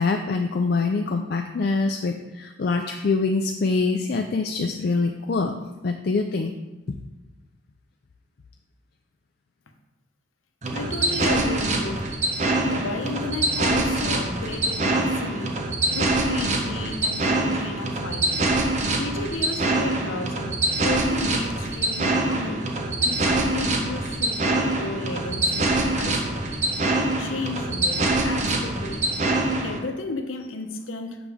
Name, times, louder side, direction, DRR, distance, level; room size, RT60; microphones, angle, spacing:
voice 1, 0.0-5.5 5.8-6.5, left 3 dB, 50° left, 0.4 m, -24 dB
sound 1, 10.6-29.8, right 2 dB, 35° right, 0.7 m, -24 dB
voice 2, 10.7-12.1 12.6-15.6 15.9-18.5 18.9-20.6 20.8-29.0 29.5-31.2, left 3 dB, 85° left, 0.8 m, -33 dB
7.1 x 5.9 x 3.5 m
head